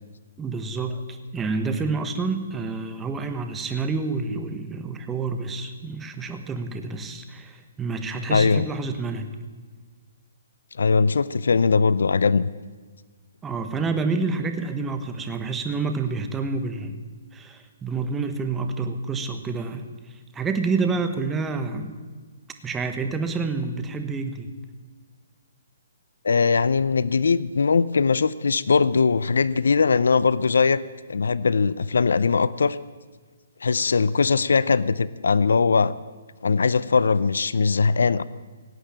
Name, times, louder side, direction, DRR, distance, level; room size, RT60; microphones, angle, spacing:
voice 1, 0.4-9.3 13.4-17.0 17.3-21.9 22.6-24.5, right 4 dB, 10° right, 7 dB, 1.3 m, -28 dB
voice 2, 8.3-8.6 10.8-12.5 26.2-30.8 31.1-32.8 33.6-35.9 36.4-38.2, left 5 dB, 80° left, 18 dB, 0.5 m, -20 dB
17.5 x 8.8 x 8.8 m, 1.4 s
hypercardioid pair, 145°, 0 cm